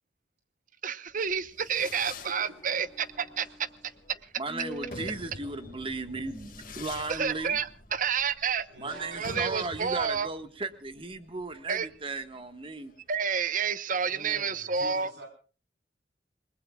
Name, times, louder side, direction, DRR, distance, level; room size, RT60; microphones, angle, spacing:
voice 1, 0.8-3.7 7.1-8.7 9.2-10.3 11.7-11.9 13.1-15.1, right 6 dB, 50° right, 14 dB, 0.9 m, -29 dB
sound 1, 1.1-11.5 11.8-11.9, equal, 15° left, 3.4 m, -49 dB
Fireworks, 1.2-13.4, left 3 dB, 50° left, 2.0 m, -48 dB
voice 2, 4.4-7.6 8.8-12.9, right 3 dB, 30° right, 9 dB, 1.5 m, -36 dB
voice 3, 8.7-9.7 13.9-15.3, right 1 dB, 85° right, 3 dB, 4.5 m, -46 dB
28.5 x 20.0 x 2.3 m, 0.36 s
head